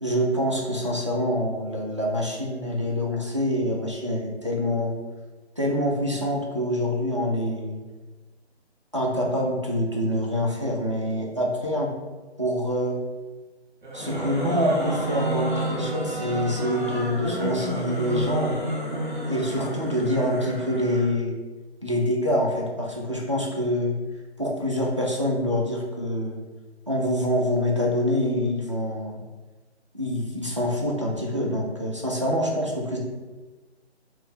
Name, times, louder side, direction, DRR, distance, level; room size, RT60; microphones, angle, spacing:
voice 1, 0.0-4.9 5.6-7.8 8.9-11.9 12.4-13.0 13.9-18.5 19.3-21.3 21.8-23.9 24.4-26.4 26.9-29.2 29.9-33.0, equal, 30° right, -3 dB, 0.4 m, -26 dB
sound 1, 13.8-21.1, right 1 dB, 45° right, 1.2 m, -30 dB
3.2 x 2.7 x 3.5 m, 1.2 s
figure-of-eight pair, 150°, 34 cm